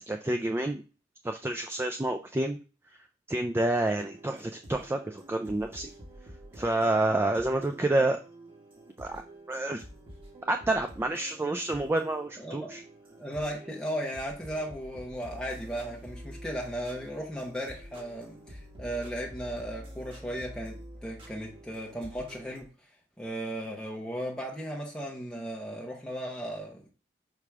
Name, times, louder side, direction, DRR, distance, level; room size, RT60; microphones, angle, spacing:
voice 1, 0.1-0.8 1.2-2.6 3.3-5.9 6.5-8.2 9.0-9.2 9.5-9.8 10.5-12.8, right 2 dB, 15° right, 6 dB, 0.3 m, -28 dB
sound 1, 3.8-22.6, equal, 30° right, 1.7 m, -48 dB
voice 2, 12.4-12.8 13.2-22.7 23.2-26.9, equal, 5° left, -3 dB, 0.9 m, -36 dB
5.8 x 4.9 x 3.5 m, 0.35 s
head